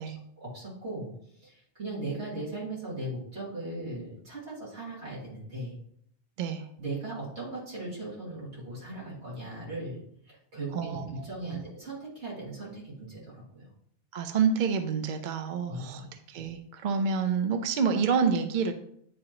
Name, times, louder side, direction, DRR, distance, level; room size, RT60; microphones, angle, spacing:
voice 1, 0.0-5.8 6.8-13.7 15.7-16.2, right 2 dB, 70° right, -7 dB, 2.8 m, -38 dB
voice 2, 10.7-11.1 11.5-11.6 14.1-18.7, right 6 dB, 55° right, 7 dB, 0.6 m, -28 dB
9.5 x 3.6 x 2.9 m, 0.69 s
omnidirectional pair, 1.2 m